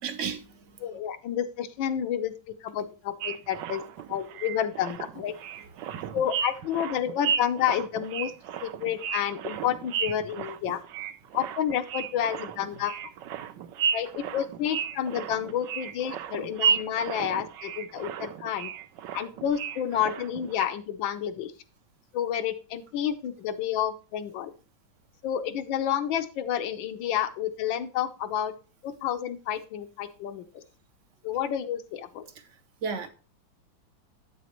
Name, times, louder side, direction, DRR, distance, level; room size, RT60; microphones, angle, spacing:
voice 1, 0.0-0.6 5.8-6.1 32.8-33.1, right 6 dB, 55° right, 0.9 m, -33 dB
voice 2, 0.8-2.3 2.6-3.8 4.1-5.3 6.1-8.3 8.6-10.8 11.3-12.9 13.9-18.7 19.1-21.5 22.1-24.5 25.2-28.5 28.8-30.6 31.2-32.2, left 9 dB, 80° left, 1.5 m, -30 dB
sound 1, 3.2-20.7, right 7 dB, 75° right, 1.2 m, -34 dB
9.3 x 7.9 x 3.0 m
omnidirectional pair, 2.1 m